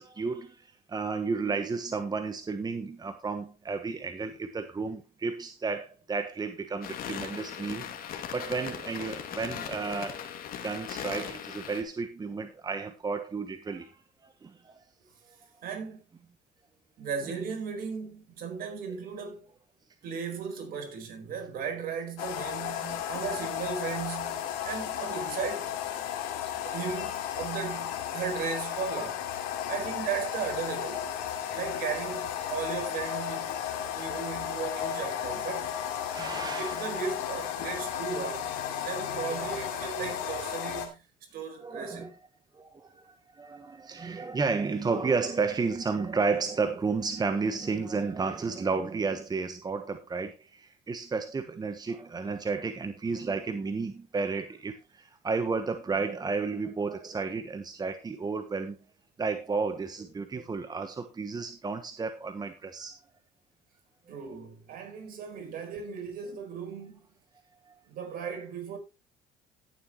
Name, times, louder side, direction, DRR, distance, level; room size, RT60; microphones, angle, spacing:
voice 1, 0.0-10.2 10.6-14.8 15.2-15.4 22.8-23.0 26.6-26.9 36.1-36.9 39.3-40.0 41.6-42.1 42.5-58.8 59.2-63.0 64.1-64.2 67.7-67.8, right 4 dB, 25° right, 1.1 m, -32 dB
sound 1, 6.8-11.8, left 8 dB, 60° left, 2.4 m, -39 dB
voice 2, 15.6-16.0 17.0-19.5 20.0-25.7 26.7-29.2 29.7-31.1 31.5-33.6 33.9-35.8 36.6-41.0 41.3-42.1 64.1-67.0 67.9-68.8, right 6 dB, 60° right, 4.6 m, -36 dB
sound 2, 22.2-40.9, left 10 dB, 85° left, 2.7 m, -34 dB
16.0 x 7.3 x 3.1 m
supercardioid pair, 80°, 17 cm